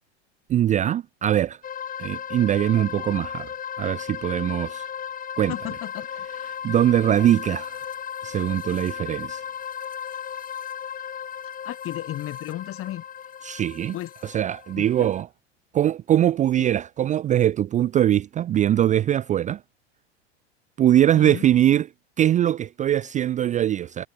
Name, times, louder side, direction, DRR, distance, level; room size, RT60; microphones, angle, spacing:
voice 1, 0.5-1.6 2.0-3.5 3.8-4.9 5.4-5.5 6.6-7.8 8.2-9.4 13.4-13.9 14.2-15.3 15.7-19.6 20.8-21.9 22.2-24.1, right 11 dB, 20° right, 0.5 m, -22 dB
sound 1, 1.6-15.2, left 8 dB, 25° left, 1.4 m, -36 dB
voice 2, 5.5-6.5 11.6-13.0 13.9-14.1 14.8-15.1 16.6-16.7 21.2-21.5, left 14 dB, 40° left, 3.5 m, -34 dB
hypercardioid pair, 100°, 34 cm